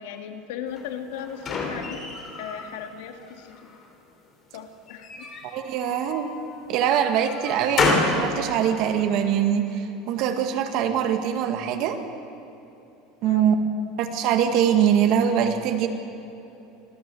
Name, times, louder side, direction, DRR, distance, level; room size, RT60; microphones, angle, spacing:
voice 1, 0.0-2.1 2.4-3.8 4.5-5.3 13.2-13.6, left 8 dB, 80° left, 6 dB, 2.0 m, -37 dB
sound 1, 0.8-2.7 3.1-3.9 4.9-6.3 6.9-8.2, left 4 dB, 30° left, 3.4 m, -28 dB
voice 2, 5.4-6.3 6.7-12.0 13.2-13.6 14.0-15.9, right 9 dB, 45° right, 6 dB, 1.9 m, -23 dB
25.5 x 15.5 x 7.7 m, 2.9 s
cardioid pair, 165°, 0 cm